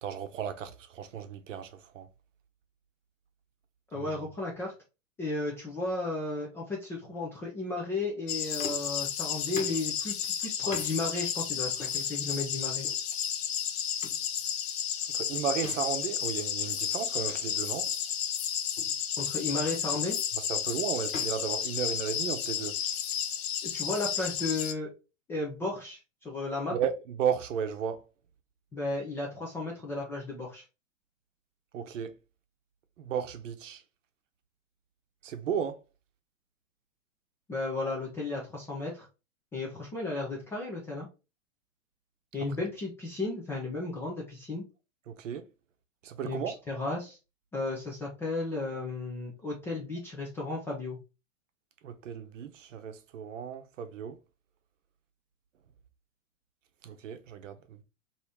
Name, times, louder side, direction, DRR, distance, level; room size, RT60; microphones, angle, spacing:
voice 1, 0.0-2.1 3.9-4.1 15.1-17.9 20.5-22.8 26.7-28.0 31.7-32.1 33.0-33.8 35.2-35.8 45.1-45.5 46.0-46.6 51.8-54.2 56.8-57.8, right 8 dB, 70° right, 0.7 m, -34 dB
voice 2, 3.9-4.7 5.2-12.9 19.2-20.2 23.6-24.9 25.3-26.0 26.2-26.7 28.7-30.6 37.5-39.1 39.5-41.1 42.3-44.6 46.2-47.2 47.5-51.0, left 2 dB, 5° left, 0.3 m, -34 dB
sound 1, 8.3-24.7, left 9 dB, 50° left, 0.6 m, -32 dB
sound 2, 8.6-9.0 9.6-9.9 10.7-11.0 11.8-12.0 12.8-13.0 14.0-14.3 15.6-16.0 17.3-17.4 17.9-18.0 18.8-19.0 19.9-20.2 21.1-22.3, left 3 dB, 90° left, 1.1 m, -43 dB
2.9 x 2.7 x 3.4 m
hypercardioid pair, 110°, 39 cm